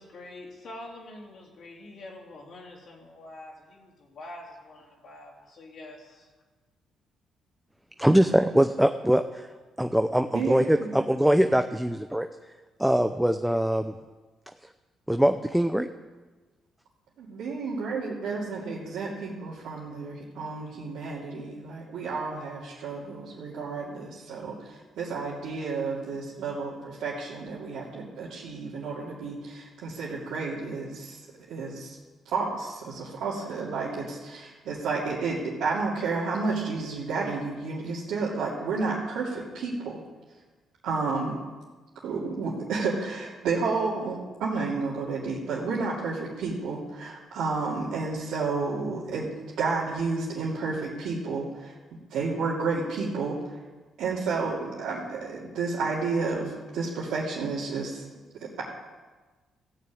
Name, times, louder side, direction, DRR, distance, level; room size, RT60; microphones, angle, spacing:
voice 1, 0.0-6.2, left 1 dB, 60° left, -5 dB, 3.2 m, -45 dB
voice 2, 8.0-9.2 9.8-12.3 12.8-13.9 15.1-15.9, right 1 dB, 5° right, 7 dB, 0.6 m, -22 dB
voice 3, 10.3-10.9 17.2-31.2 31.5-32.0 32.2-40.0 40.8-41.4 42.0-49.3 49.6-53.4 54.0-58.0 58.4-58.6, right 4 dB, 85° right, -8 dB, 2.7 m, -31 dB
15.5 x 6.7 x 8.6 m, 1.3 s
cardioid pair, 90°, 0 cm